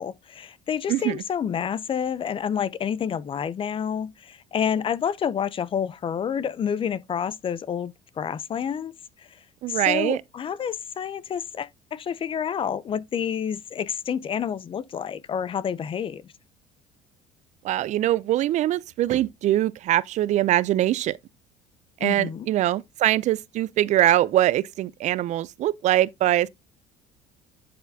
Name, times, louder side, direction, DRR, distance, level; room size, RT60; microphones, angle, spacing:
voice 1, 0.0-8.9 9.2-9.3 9.7-16.2 22.0-22.5, left 8 dB, 35° left, 0.5 m, -29 dB
voice 2, 0.9-1.2 9.6-10.2 17.6-21.2 22.0-26.5, right 13 dB, 55° right, 0.4 m, -23 dB
11.0 x 4.2 x 2.7 m
supercardioid pair, 90°, 15 cm